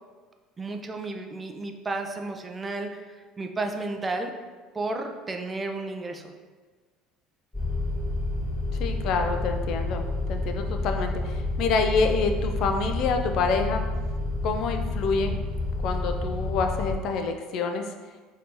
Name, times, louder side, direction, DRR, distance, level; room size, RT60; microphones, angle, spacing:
voice 1, 0.6-4.3 4.7-6.3, right 2 dB, 25° right, 4 dB, 0.4 m, -32 dB
sound 1, 7.5-16.9, left 2 dB, 10° left, 1.2 m, -29 dB
voice 2, 8.8-13.8 14.4-15.4 15.8-17.8, left 4 dB, 60° left, 5 dB, 0.3 m, -27 dB
2.8 x 2.7 x 3.6 m, 1.4 s
hypercardioid pair, 80°, 0 cm